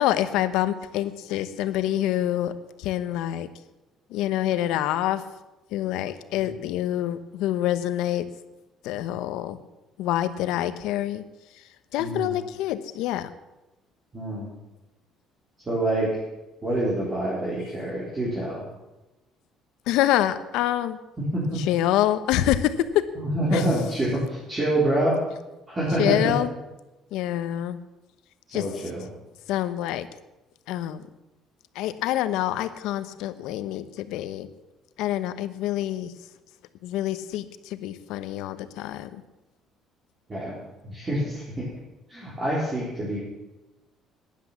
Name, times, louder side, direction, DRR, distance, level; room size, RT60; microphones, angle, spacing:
voice 1, 0.0-2.5 2.8-3.5 4.1-5.2 5.7-8.2 8.8-9.6 10.0-11.2 11.9-13.3 19.9-21.0 21.6-23.1 23.5-23.6 26.0-26.5 27.1-27.8 28.5-28.6 29.5-30.1 30.7-31.0 31.7-34.5 35.0-36.1 36.8-39.2, left 13 dB, 85° left, 12 dB, 0.9 m, -26 dB
voice 2, 12.0-12.3 14.1-14.5 15.6-16.2 16.6-18.6 21.3-21.6 23.2-25.2 25.7-26.2 28.5-29.1 40.3-40.6 40.8-41.6 42.1-43.2, right 1 dB, 25° right, -7 dB, 3.9 m, -26 dB
12.0 x 10.5 x 7.3 m, 1.0 s
cardioid pair, 135°, 0 cm